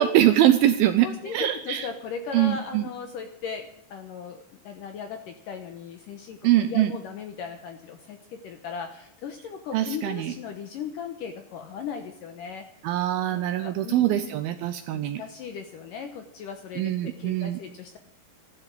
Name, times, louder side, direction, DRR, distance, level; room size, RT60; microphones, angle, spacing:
voice 1, 0.0-1.9 2.3-2.9 6.4-6.9 9.7-10.3 12.8-15.2 16.8-17.6, right 12 dB, 85° right, 9 dB, 2.1 m, -23 dB
voice 2, 1.0-12.7 13.3-14.4 14.9-18.0, left 6 dB, 75° left, 5 dB, 2.0 m, -37 dB
14.0 x 12.5 x 7.5 m, 0.72 s
omnidirectional pair, 5.1 m